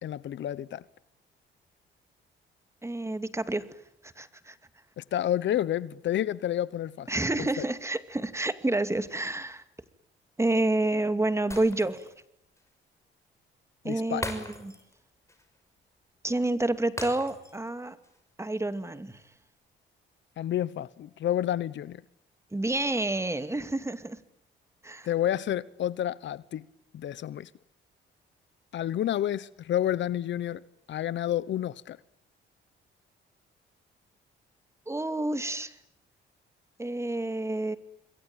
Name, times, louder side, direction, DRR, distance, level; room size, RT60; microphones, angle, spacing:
voice 1, 0.0-0.8 5.0-7.1 7.4-7.7 13.8-14.2 20.4-22.0 25.1-26.6 26.9-27.5 28.7-30.6 30.9-32.0, left 11 dB, 70° left, 1.0 m, -30 dB
voice 2, 2.8-3.7 4.0-4.5 7.1-9.6 10.4-12.1 13.8-14.7 16.2-18.0 18.4-19.2 22.5-24.2 24.8-25.1 34.9-35.7 36.8-37.8, right 2 dB, 15° right, 2.4 m, -29 dB
Shatter, 11.5-12.2 12.6-12.7 14.2-15.0 15.3-15.5 17.0-17.7 18.0-18.2, left 2 dB, 15° left, 6.3 m, -39 dB
27.5 x 22.0 x 9.0 m
cardioid pair, 90°, 20 cm